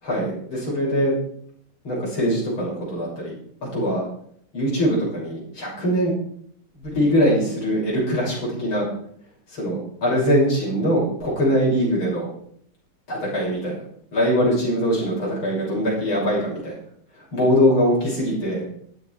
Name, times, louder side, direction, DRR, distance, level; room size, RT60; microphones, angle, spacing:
voice 1, 0.0-1.1 1.8-4.0 4.5-6.1 6.8-8.9 9.5-12.3 13.1-13.8 14.1-16.8 17.3-18.6, equal, 70° left, -5 dB, 7.4 m, -22 dB
15.5 x 12.0 x 4.8 m, 0.64 s
omnidirectional pair, 2.3 m